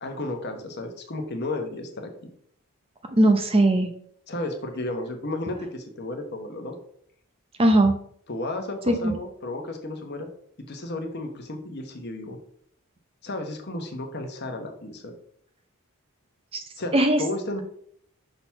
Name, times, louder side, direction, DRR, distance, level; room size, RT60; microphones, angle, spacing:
voice 1, 0.0-2.3 4.3-6.7 8.3-10.3 10.7-12.4 13.2-15.1 16.8-17.6, left 2 dB, 45° left, 4 dB, 1.1 m, -33 dB
voice 2, 3.2-3.9 7.6-7.9 8.9-9.1 16.9-17.2, right 1 dB, 25° right, 6 dB, 0.6 m, -19 dB
5.9 x 4.0 x 5.7 m, 0.64 s
head